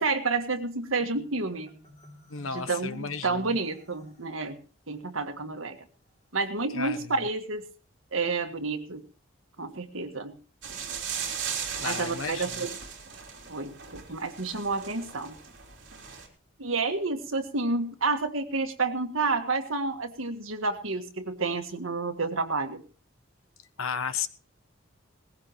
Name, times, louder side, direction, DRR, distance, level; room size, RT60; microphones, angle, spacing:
voice 1, 0.0-1.8 2.5-4.6 4.9-5.8 6.3-7.6 8.1-9.0 9.6-10.4 11.8-12.7 13.5-15.4 16.6-22.8, right 3 dB, 85° right, 6 dB, 1.8 m, -30 dB
Marimba xylophone, 1.0-4.3, equal, 30° left, 3.0 m, -53 dB
voice 2, 2.3-3.6 6.7-7.2 11.8-12.7 23.8-24.3, left 6 dB, 90° left, 11 dB, 1.2 m, -34 dB
sound 1, 10.6-16.3, right 7 dB, 60° right, 3.7 m, -37 dB
19.5 x 15.5 x 3.1 m, 0.36 s
head